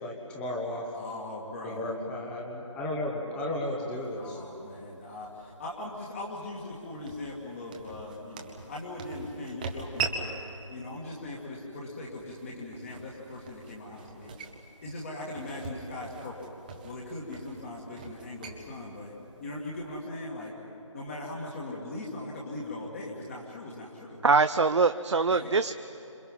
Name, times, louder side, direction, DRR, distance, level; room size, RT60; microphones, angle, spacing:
voice 1, 0.0-0.9 1.6-4.4, left 1 dB, 5° left, 0 dB, 1.3 m, -34 dB
voice 2, 0.9-1.9 4.2-10.3 10.7-14.3 14.8-16.5 16.8-20.5 20.9-24.2 25.3-25.5, left 2 dB, 25° left, -4 dB, 2.3 m, -40 dB
sound 1, 3.9-20.0, right 4 dB, 15° right, 1.2 m, -43 dB
voice 3, 24.2-25.8, right 4 dB, 60° right, 10 dB, 0.6 m, -23 dB
29.5 x 26.5 x 5.6 m, 3.0 s
figure-of-eight pair, 165°, 17 cm